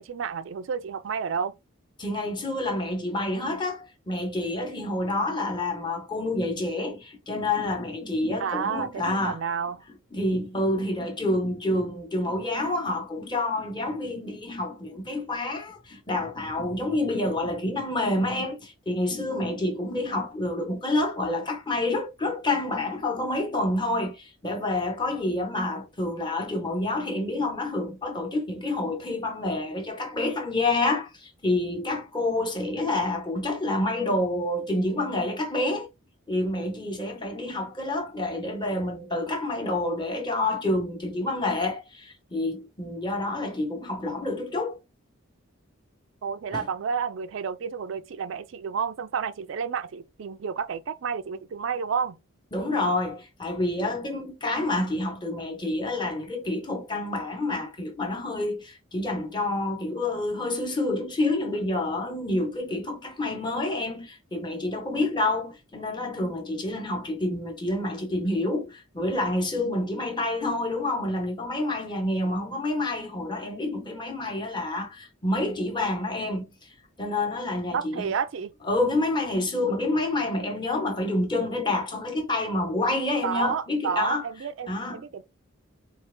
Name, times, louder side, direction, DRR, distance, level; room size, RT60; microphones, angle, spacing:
voice 1, 0.0-1.5 8.4-9.8 46.2-52.2 77.7-78.5 83.2-85.2, right 6 dB, 65° right, 0.4 m, -30 dB
voice 2, 2.0-9.4 10.1-35.9 36.3-44.8 46.5-46.6 52.5-76.5 77.0-78.1 78.6-84.2 84.7-85.1, left 2 dB, 20° left, 1.0 m, -28 dB
4.3 x 2.4 x 3.3 m
head